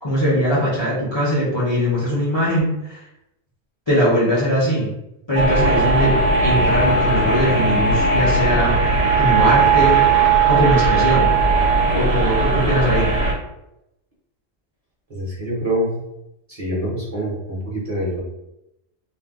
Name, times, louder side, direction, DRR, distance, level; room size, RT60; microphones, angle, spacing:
voice 1, 0.0-3.0 3.9-4.9 5.3-8.8 9.1-10.0 10.5-11.4 11.9-13.1, equal, 25° left, -7 dB, 0.6 m, -20 dB
sound 1, 5.4-13.3, right 4 dB, 55° right, 1.1 m, -17 dB
voice 2, 15.1-16.0 16.5-18.2, right 1 dB, 35° right, -6 dB, 0.7 m, -25 dB
2.5 x 2.2 x 3.5 m, 0.88 s
omnidirectional pair, 1.3 m